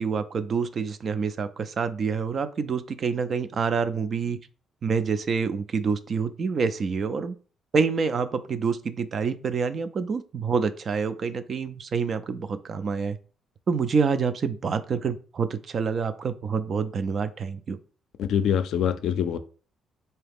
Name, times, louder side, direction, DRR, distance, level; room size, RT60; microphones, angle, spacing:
voice 1, 0.0-4.4 4.8-7.4 7.7-13.2 13.7-17.8, right 5 dB, 50° right, 0.4 m, -27 dB
voice 2, 18.2-19.4, left 9 dB, 75° left, 0.4 m, -24 dB
3.8 x 2.8 x 3.5 m
cardioid pair, 90°, 0 cm